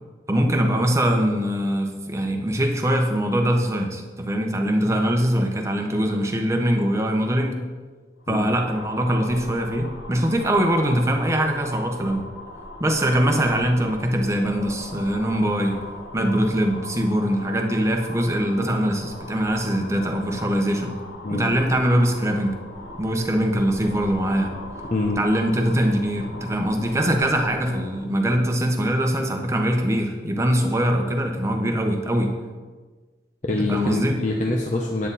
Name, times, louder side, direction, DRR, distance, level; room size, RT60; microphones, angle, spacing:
voice 1, 0.3-7.6 8.3-12.3 12.8-15.8 16.1-21.0 21.3-22.6 23.0-24.6 25.2-32.4 33.7-34.2, equal, 15° right, 3 dB, 1.1 m, -22 dB
sound 1, 8.2-28.1, left 1 dB, 75° left, 1.3 m, -40 dB
voice 2, 24.9-25.2 33.4-35.1, left 2 dB, 40° left, 0 dB, 0.9 m, -25 dB
9.6 x 9.5 x 4.2 m, 1.4 s
head